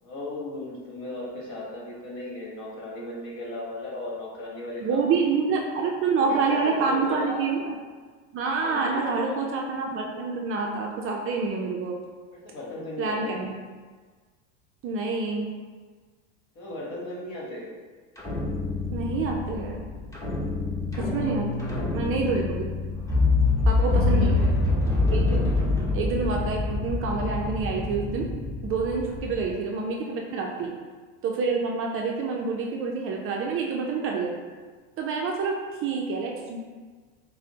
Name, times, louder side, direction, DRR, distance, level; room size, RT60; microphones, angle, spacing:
voice 1, 0.0-5.1 6.1-7.4 8.5-9.5 12.3-13.4 16.5-17.7 21.6-21.9 23.6-24.5 30.4-30.7, left 1 dB, 50° left, -4 dB, 1.3 m, -37 dB
voice 2, 4.8-7.8 8.3-12.0 13.0-13.5 14.8-15.5 18.9-19.9 21.0-21.5 21.9-22.7 23.7-24.5 25.1-25.5 25.9-28.3 28.6-30.7 31.2-34.4 35.0-36.6, right 4 dB, 35° right, 0 dB, 0.4 m, -27 dB
sound 1, 18.2-29.4, left 3 dB, 10° left, 0.8 m, -26 dB
4.9 x 2.0 x 2.8 m, 1.5 s
supercardioid pair, 110°, 37 cm